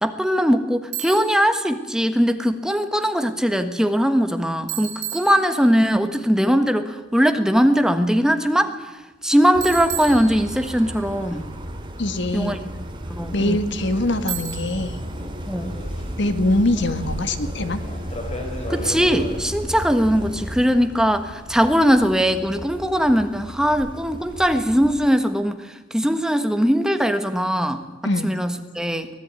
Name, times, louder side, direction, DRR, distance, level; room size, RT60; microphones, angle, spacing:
voice 1, 0.0-8.7 9.2-11.5 12.3-12.6 13.1-13.6 15.4-15.7 18.7-25.6 25.9-27.8 28.2-29.1, equal, 5° right, 7 dB, 1.4 m, -20 dB
Bicycle, 0.9-1.4 4.7-5.9 9.6-10.9 14.3-14.9, right 10 dB, 60° right, 6.8 m, -32 dB
sound 1, 9.5-25.1, equal, 25° right, 2.6 m, -34 dB
voice 2, 12.0-12.6 13.3-15.0 16.2-17.8 28.0-28.3, left 1 dB, 60° left, 9 dB, 1.9 m, -23 dB
sound 2, 13.9-19.4, left 1 dB, 30° left, 5.3 m, -37 dB
24.5 x 19.0 x 9.6 m, 1.1 s
head